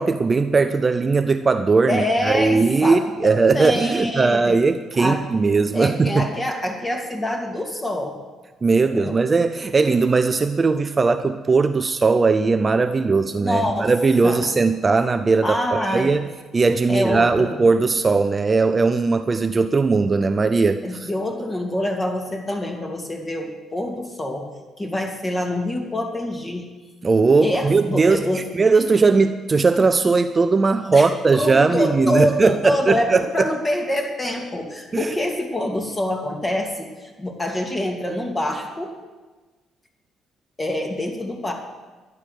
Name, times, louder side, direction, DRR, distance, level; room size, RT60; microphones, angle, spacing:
voice 1, 0.0-6.3 8.6-16.3 16.5-21.1 27.0-33.5 34.9-35.1, right 4 dB, 30° right, 9 dB, 0.6 m, -19 dB
voice 2, 1.9-4.6 5.0-5.2 5.7-8.2 8.8-9.2 13.4-13.9 14.2-14.5 15.4-16.3 16.9-17.6 20.8-24.5 24.8-26.6 27.4-28.4 30.9-38.9 40.6-41.5, left 1 dB, 20° left, 1 dB, 2.7 m, -25 dB
11.5 x 10.5 x 6.6 m, 1.2 s
cardioid pair, 90°, 0 cm